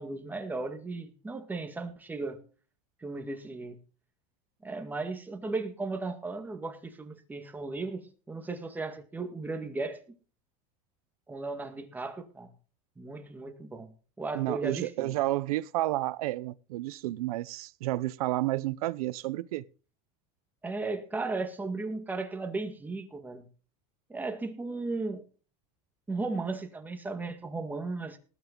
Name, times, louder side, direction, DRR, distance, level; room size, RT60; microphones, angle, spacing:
voice 1, 0.0-2.4 3.0-3.8 4.6-10.0 11.3-12.5 13.0-15.1 20.6-23.5 24.1-25.2 26.1-28.2, right 3 dB, 10° right, 1.9 m, -36 dB
voice 2, 14.3-19.6, right 17 dB, 85° right, 0.8 m, -31 dB
19.0 x 9.1 x 3.9 m
supercardioid pair, 150°, 18 cm